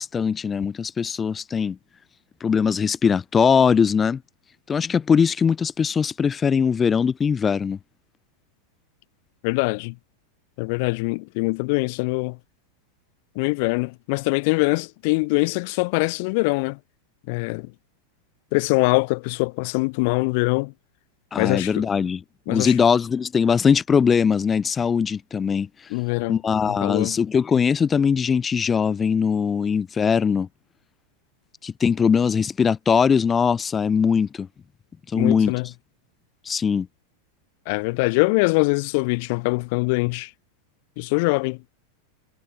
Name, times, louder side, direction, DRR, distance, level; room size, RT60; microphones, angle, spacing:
voice 1, 0.0-1.8 2.4-4.2 4.7-7.8 21.3-22.2 22.5-25.7 26.3-30.5 31.6-34.5 35.1-35.5 36.4-36.9, left 6 dB, 20° left, 1.2 m, -21 dB
voice 2, 9.4-10.0 10.6-12.4 13.3-16.8 17.3-17.7 18.5-20.7 21.4-21.9 22.5-22.7 25.9-26.4 26.7-27.2 35.1-35.7 37.7-40.3 41.0-41.6, left 29 dB, 45° left, 1.2 m, -23 dB
figure-of-eight pair, 90°, 0 cm